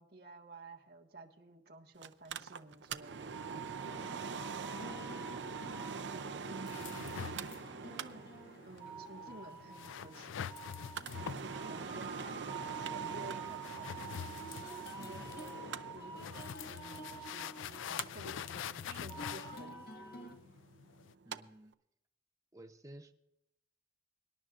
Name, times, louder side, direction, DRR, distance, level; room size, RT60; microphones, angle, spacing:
voice 1, 0.0-3.8 6.3-7.0 7.8-8.3 8.7-10.7 11.4-14.0 15.0-19.9, right 2 dB, 55° right, 1 dB, 1.5 m, -53 dB
Mechanical fan, 2.0-21.4 21.7-21.8, right 5 dB, 70° right, 0.6 m, -45 dB
sound 1, 3.3-20.3, right 4 dB, 55° left, 1.9 m, -48 dB
sound 2, 6.7-21.1, left 9 dB, 90° left, 0.3 m, -46 dB
voice 2, 21.2-21.7 22.5-23.1, right 1 dB, 15° right, 7 dB, 0.7 m, -54 dB
25.0 x 11.0 x 2.5 m, 0.85 s
head